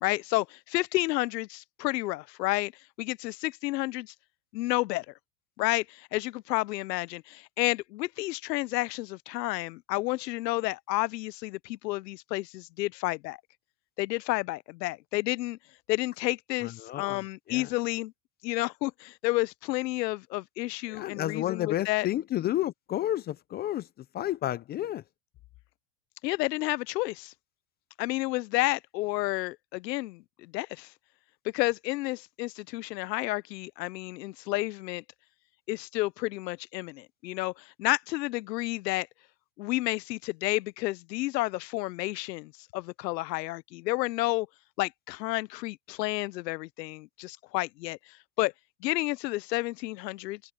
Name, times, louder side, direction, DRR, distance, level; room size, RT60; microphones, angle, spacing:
voice 1, 0.0-2.7 3.0-4.1 4.5-5.1 5.6-13.4 14.0-15.6 15.9-18.1 18.4-22.1 26.2-27.3 28.0-30.9 31.4-35.0 35.7-39.1 39.6-44.5 44.8-48.5 48.8-50.4, left 19 dB, 80° left, 0.7 m, -31 dB
voice 2, 16.6-17.2 17.5-17.7 20.9-23.9 24.1-25.0, left 13 dB, 20° left, 0.4 m, -31 dB
supercardioid pair, 125°, 49 cm